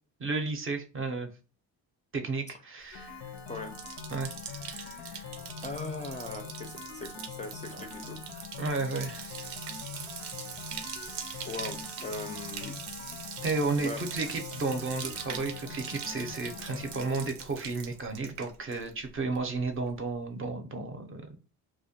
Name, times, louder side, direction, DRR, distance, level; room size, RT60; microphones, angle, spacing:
voice 1, 0.2-1.3 2.1-3.4 4.1-5.3 8.6-9.5 13.4-21.4, right 3 dB, 35° right, 6 dB, 0.5 m, -33 dB
sound 1, 2.9-17.3, left 7 dB, 90° left, 0.5 m, -44 dB
Bathtub (filling or washing), 3.0-19.1 19.3-19.9, right 7 dB, 80° right, 0.5 m, -42 dB
voice 2, 5.6-8.2 11.4-12.7 13.8-14.0, left 3 dB, 20° left, 4 dB, 0.3 m, -39 dB
2.1 x 2.1 x 2.7 m, 0.35 s
cardioid pair, 70°, 39 cm